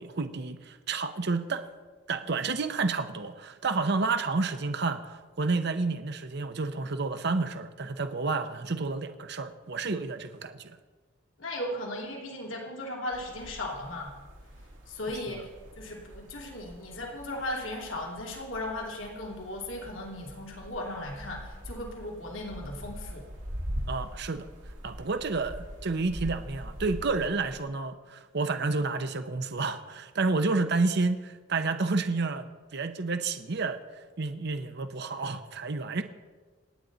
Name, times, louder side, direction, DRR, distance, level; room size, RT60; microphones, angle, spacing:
voice 1, 0.0-1.7 2.1-10.8 23.9-24.5 24.8-33.8 34.2-36.0, right 3 dB, 60° right, 9 dB, 0.8 m, -30 dB
voice 2, 11.4-14.2 14.9-15.5 15.8-23.3, left 1 dB, 80° left, -1 dB, 2.9 m, -37 dB
sound 1, 13.1-27.6, equal, 75° right, 2.5 m, -43 dB
27.5 x 9.5 x 4.0 m, 1.4 s
head